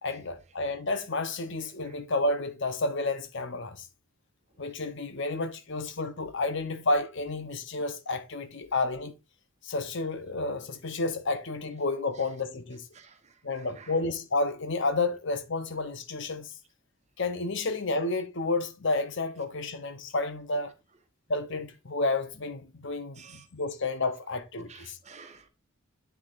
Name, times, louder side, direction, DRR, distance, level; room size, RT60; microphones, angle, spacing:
voice 1, 0.0-3.9 4.6-9.1 9.6-12.8 13.4-16.5 17.2-20.7 21.3-25.0, left 2 dB, 55° left, 0.8 m, -31 dB
voice 2, 13.5-14.0 23.2-23.4 24.7-25.5, right 6 dB, 30° right, 1.2 m, -51 dB
8.3 x 6.9 x 2.5 m
head